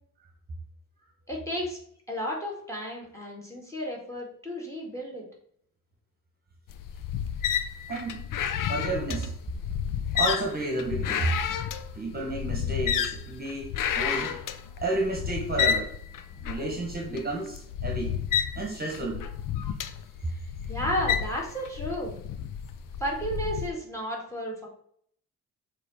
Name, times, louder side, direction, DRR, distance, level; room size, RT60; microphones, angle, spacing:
voice 1, 1.3-1.8 2.1-5.2 20.7-22.2 23.0-24.7, equal, 10° left, -1 dB, 2.2 m, -33 dB
sound 1, 6.7-23.7, left 8 dB, 70° left, 0.6 m, -31 dB
voice 2, 7.9-8.2 8.7-9.3 10.1-11.4 11.9-14.4 14.8-15.9 16.4-18.2 18.6-19.2 20.2-20.3, right 2 dB, 30° right, 1 dB, 1.3 m, -31 dB
6.9 x 3.1 x 5.0 m, 0.64 s
cardioid pair, 115°, 33 cm